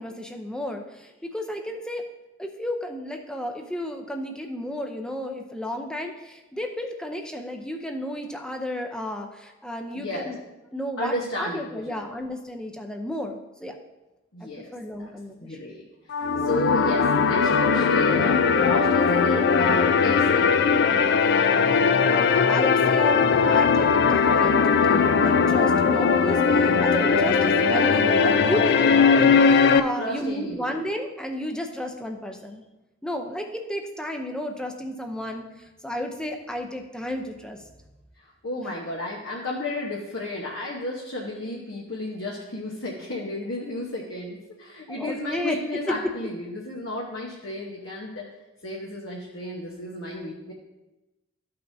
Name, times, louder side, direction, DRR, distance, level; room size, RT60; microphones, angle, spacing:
voice 1, 0.0-2.1 2.4-10.4 10.7-13.7 14.4-15.6 22.1-32.6 33.0-37.6 38.6-38.7 44.9-45.6 45.9-46.1, equal, 5° left, 3 dB, 0.6 m, -32 dB
voice 2, 9.9-10.3 11.0-12.2 14.3-15.1 15.4-15.9 16.4-20.5 29.9-30.8 38.2-48.3 48.6-50.5, left 1 dB, 70° left, -3 dB, 1.1 m, -33 dB
sound 1, 16.1-29.8, left 5 dB, 55° left, 0.4 m, -19 dB
13.0 x 5.5 x 2.7 m, 1.0 s
head